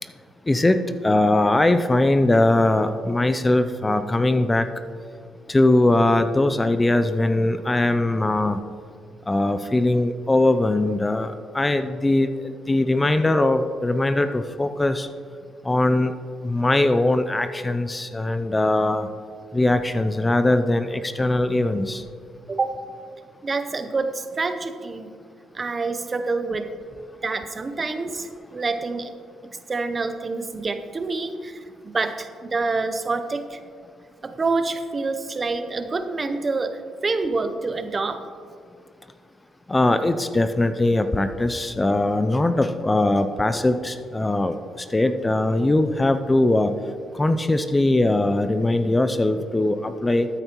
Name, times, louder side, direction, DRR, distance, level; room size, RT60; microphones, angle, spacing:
voice 1, 0.5-4.7 5.5-8.6 9.3-15.1 15.6-16.1 16.4-19.1 19.5-22.0 39.7-46.8 47.1-50.3, left 2 dB, 15° left, 10 dB, 0.4 m, -21 dB
voice 2, 22.5-22.8 23.4-25.1 25.5-26.7 27.2-29.1 29.4-33.6 34.2-38.2, right 3 dB, 30° right, 9 dB, 0.7 m, -27 dB
13.5 x 9.1 x 3.0 m, 2.1 s
cardioid pair, 90°, 0 cm